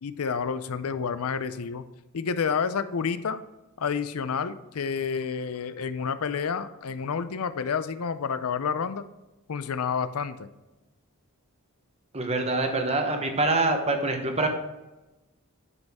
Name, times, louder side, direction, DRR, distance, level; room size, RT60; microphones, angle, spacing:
voice 1, 0.0-1.8 2.1-3.4 3.8-9.0 9.5-10.5, left 6 dB, 70° left, 12 dB, 0.5 m, -29 dB
voice 2, 12.1-14.5, right 2 dB, 30° right, 4 dB, 1.0 m, -25 dB
9.5 x 5.2 x 3.6 m, 1.0 s
head